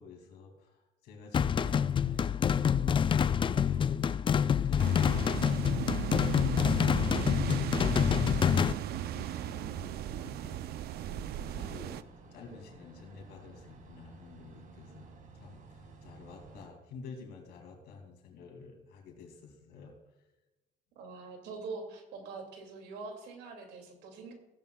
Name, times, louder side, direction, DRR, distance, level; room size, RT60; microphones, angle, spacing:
voice 1, 0.0-3.1 3.4-6.8 7.3-15.1 15.3-19.9, left 4 dB, 80° left, 2 dB, 2.7 m, -50 dB
sound 1, 1.3-8.7, left 8 dB, 30° left, 0.4 m, -27 dB
sound 2, 4.8-12.0, right 12 dB, 70° right, 0.5 m, -36 dB
sound 3, 10.9-16.7, right 3 dB, 50° right, 2.1 m, -54 dB
voice 2, 21.0-24.3, right 4 dB, 90° right, 4 dB, 2.5 m, -44 dB
15.5 x 11.0 x 2.3 m, 1.0 s
cardioid pair, 110°, 17 cm